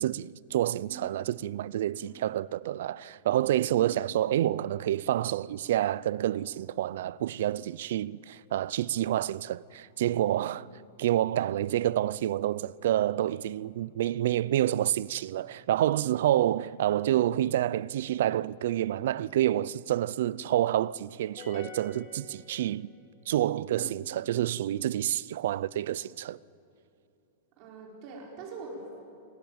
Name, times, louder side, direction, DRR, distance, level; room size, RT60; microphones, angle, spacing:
voice 1, 0.0-10.6 11.0-22.9 23.3-26.4, right 12 dB, 60° right, 0.5 m, -28 dB
sound 1, 21.4-23.1, left 4 dB, 25° left, 5.9 m, -46 dB
voice 2, 27.6-29.0, right 3 dB, 35° right, 4.5 m, -44 dB
24.0 x 21.5 x 8.9 m
supercardioid pair, 170°, 0 cm